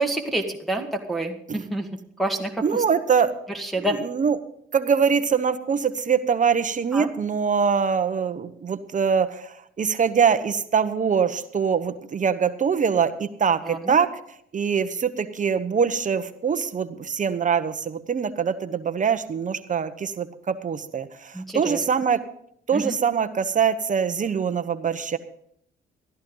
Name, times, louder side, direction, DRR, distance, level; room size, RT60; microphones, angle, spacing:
voice 1, 0.0-2.8 3.5-4.0 6.9-7.1 13.6-14.0 21.3-21.8 22.7-23.0, right 1 dB, ahead, 0 dB, 1.9 m, -28 dB
voice 2, 2.6-3.3 3.8-4.4 4.7-14.1 14.5-22.2 22.7-25.2, right 6 dB, 40° right, 10 dB, 0.9 m, -23 dB
14.5 x 13.5 x 3.9 m, 0.68 s
cardioid pair, 90°, 20 cm